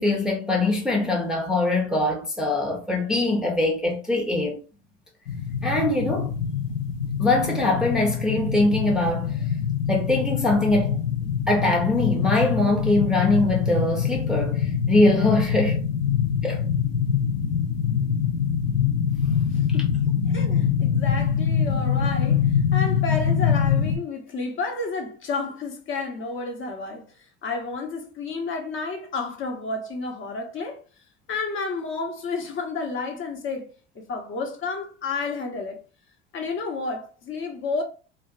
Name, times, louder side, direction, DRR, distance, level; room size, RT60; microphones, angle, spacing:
voice 1, 0.0-4.6 5.6-6.3 7.2-9.4 9.9-11.0 11.5-15.8 16.4-16.6, left 2 dB, ahead, 0.6 m, -22 dB
sound 1, 5.3-24.0, left 7 dB, 70° left, 0.7 m, -24 dB
voice 2, 19.5-19.9 20.3-27.1 27.4-30.8 31.3-35.8 36.3-37.8, left 3 dB, 40° left, 0.7 m, -31 dB
2.5 x 2.1 x 2.4 m
hypercardioid pair, 75°, 32 cm